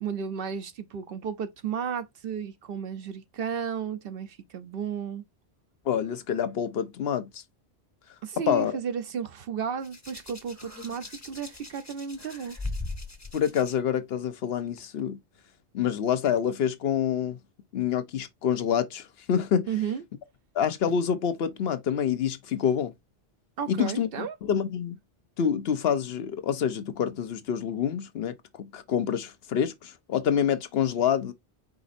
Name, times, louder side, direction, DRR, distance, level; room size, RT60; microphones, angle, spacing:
voice 1, 0.0-5.2 8.2-12.6 19.7-20.0 23.6-24.4, right 7 dB, 65° right, 0.8 m, -33 dB
voice 2, 5.9-7.4 8.5-8.7 13.3-15.2 15.7-17.4 17.7-19.7 20.5-22.9 23.7-25.0 25.4-31.3, left 8 dB, 70° left, 0.9 m, -27 dB
Hands, 9.8-13.7 14.8-15.0, left 2 dB, 15° left, 0.8 m, -39 dB
5.0 x 4.0 x 2.5 m
omnidirectional pair, 1.1 m